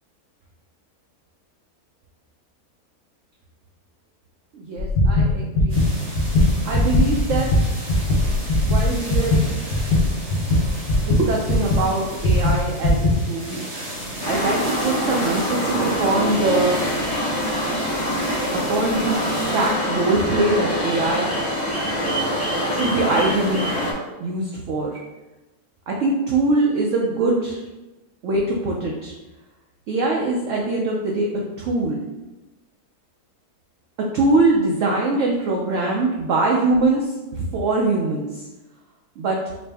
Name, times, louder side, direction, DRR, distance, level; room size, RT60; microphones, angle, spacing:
voice 1, 4.5-5.8 6.7-7.7 8.6-9.5 11.0-13.7 14.2-16.8 18.5-19.2 19.5-21.3 22.7-23.8 24.2-25.0 25.9-27.6 28.2-29.1 29.9-31.3 31.6-32.0 34.0-38.5 39.2-39.4, right 2 dB, 65° right, -2 dB, 0.8 m, -22 dB
sound 1, 4.8-11.9 12.2-13.1, left 1 dB, 70° left, 1.2 m, -19 dB
sound 2, 5.7-19.7, right 1 dB, 85° right, 1.9 m, -35 dB
sound 3, 14.2-23.9, equal, 20° left, 0.6 m, -24 dB
5.1 x 2.1 x 3.3 m, 1.1 s
omnidirectional pair, 1.6 m